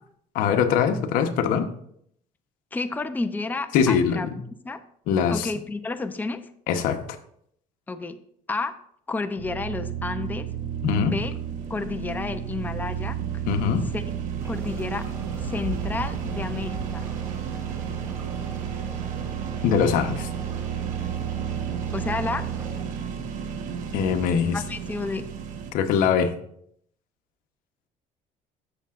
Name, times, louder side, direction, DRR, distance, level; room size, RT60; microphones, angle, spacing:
voice 1, 0.3-1.7 3.7-4.3 5.1-5.5 6.7-7.0 10.8-11.1 13.5-13.9 19.6-20.3 23.9-24.6 25.7-26.3, left 7 dB, 75° left, 7 dB, 1.0 m, -22 dB
voice 2, 2.7-4.8 5.3-6.4 7.9-8.2 8.5-8.8 9.1-10.5 11.0-11.3 11.7-13.2 13.9-14.0 14.5-15.1 15.4-17.1 21.9-22.5 24.5-25.2, left 3 dB, 10° left, 9 dB, 0.6 m, -30 dB
sound 1, 9.4-25.7, right 8 dB, 65° right, 1.1 m, -32 dB
sound 2, 14.4-22.8, right 2 dB, 20° right, 2.8 m, -40 dB
13.5 x 6.7 x 2.5 m, 0.67 s
cardioid pair, 115°, 14 cm